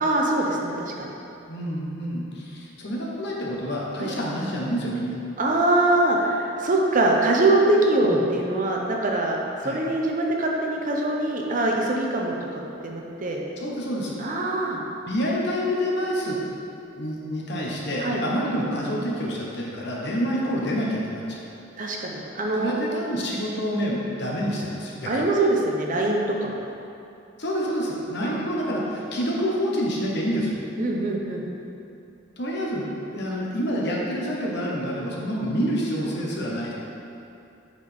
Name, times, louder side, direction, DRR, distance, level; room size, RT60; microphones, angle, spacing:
voice 1, 0.0-1.1 4.0-4.1 5.4-9.4 9.6-12.3 12.8-13.4 14.2-14.8 18.0-18.2 21.8-22.7 25.1-26.6 28.2-28.4 30.8-31.4, right 2 dB, 45° right, -1 dB, 0.7 m, -23 dB
voice 2, 1.5-5.2 8.0-8.2 9.6-9.8 13.6-14.1 15.1-16.4 17.0-21.4 22.5-25.2 27.4-30.5 32.4-36.7, equal, 60° left, -3 dB, 1.1 m, -27 dB
8.4 x 4.1 x 3.5 m, 2.7 s
head